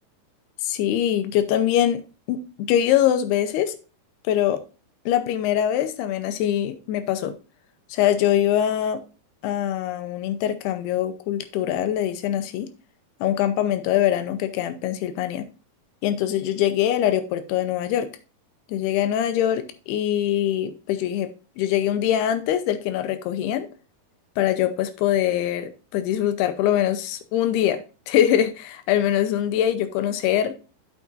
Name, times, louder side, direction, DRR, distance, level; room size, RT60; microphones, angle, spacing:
voice 1, 0.6-2.0 2.3-3.8 4.3-4.6 5.1-7.3 7.9-9.0 9.4-12.7 13.2-15.5 16.0-18.1 18.7-21.3 21.6-23.7 24.4-30.5, left 11 dB, 85° left, 2.7 m, -23 dB
8.4 x 8.3 x 2.5 m
omnidirectional pair, 4.7 m